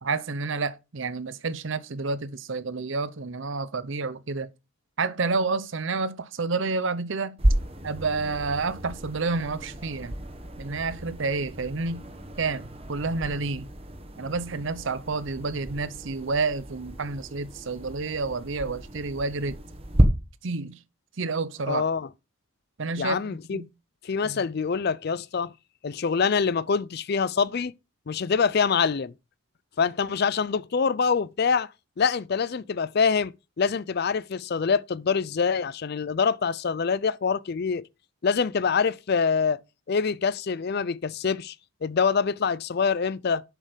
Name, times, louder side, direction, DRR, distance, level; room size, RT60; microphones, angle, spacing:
voice 1, 0.0-4.5 5.0-7.4 7.8-10.1 10.6-12.1 12.4-13.7 14.2-19.6 20.4-20.8 21.2-21.9 22.8-23.7 24.2-24.4, right 3 dB, 60° right, 0.7 m, -29 dB
sound 1, 7.4-20.0, right 1 dB, 25° right, 1.2 m, -31 dB
voice 2, 21.7-22.1 23.0-23.6 24.0-25.5 25.8-27.7 28.1-29.1 29.8-31.7 32.0-37.9 38.2-39.6 39.9-41.6 41.8-43.4, left 5 dB, 45° left, 0.4 m, -25 dB
7.5 x 6.4 x 5.0 m
head